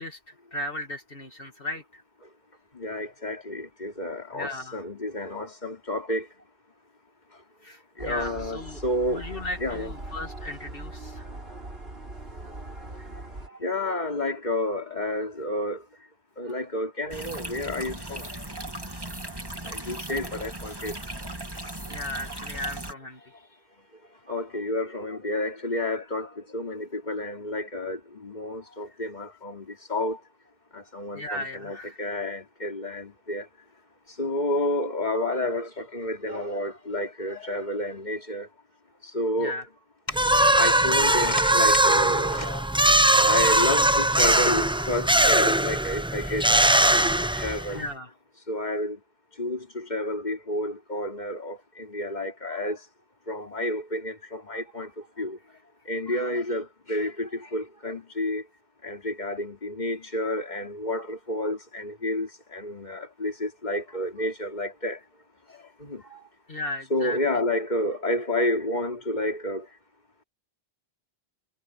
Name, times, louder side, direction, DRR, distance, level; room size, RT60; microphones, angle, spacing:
voice 1, 0.0-2.0 4.3-4.8 7.6-8.8 9.1-11.2 16.4-16.5 21.9-23.5 31.1-32.0 39.4-39.7 47.7-48.1 66.5-67.2, left 2 dB, 60° left, 2.5 m, -36 dB
voice 2, 2.7-6.3 8.0-9.2 9.6-9.9 13.6-15.8 16.4-18.3 19.6-21.0 24.3-30.2 30.7-33.5 34.2-38.5 39.1-39.6 40.2-42.7 43.1-47.9 48.5-49.0 49.4-52.8 53.3-54.9 55.2-55.4 55.9-58.4 58.8-65.0 65.8-66.2 66.9-69.7, left 1 dB, 45° left, 3.3 m, -30 dB
sound 1, 8.0-13.5, right 2 dB, 75° right, 3.5 m, -40 dB
sound 2, 17.1-22.9, right 1 dB, 20° right, 2.5 m, -37 dB
sound 3, 40.1-47.8, right 1 dB, 5° right, 0.5 m, -21 dB
omnidirectional pair, 1.0 m